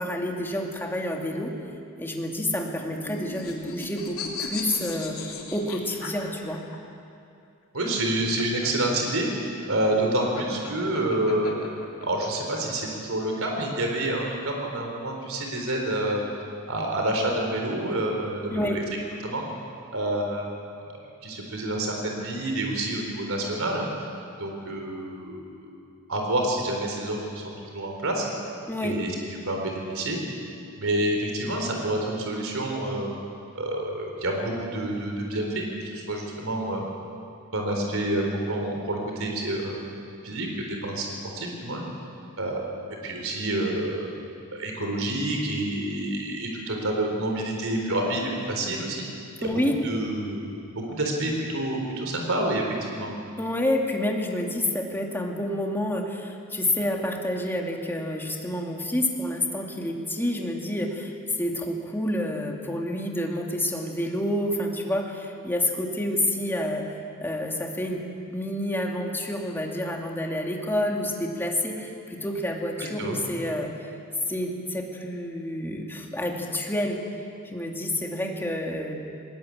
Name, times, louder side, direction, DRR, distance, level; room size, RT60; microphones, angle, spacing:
voice 1, 0.0-1.5 2.0-5.2 5.5-6.6 18.5-18.8 28.7-29.0 49.4-49.8 53.4-61.1 61.4-73.7 74.3-77.0 77.5-78.9, left 1 dB, 10° left, 0 dB, 2.5 m, -29 dB
sound 1, 2.7-6.8 8.0-12.3, left 4 dB, 70° left, 3.2 m, -37 dB
voice 2, 7.7-11.6 12.0-16.2 16.7-18.8 19.2-19.5 19.9-20.5 21.2-23.9 24.4-25.7 26.1-28.3 28.8-29.1 29.5-30.2 30.8-33.1 33.5-36.8 37.5-39.9 40.2-41.1 41.3-41.8 42.4-42.6 43.0-44.1 44.5-49.0 49.4-49.5 49.8-50.6 50.9-53.1 72.8-73.2, right 1 dB, 65° right, 1 dB, 4.1 m, -28 dB
20.5 x 20.0 x 8.7 m, 2.5 s
head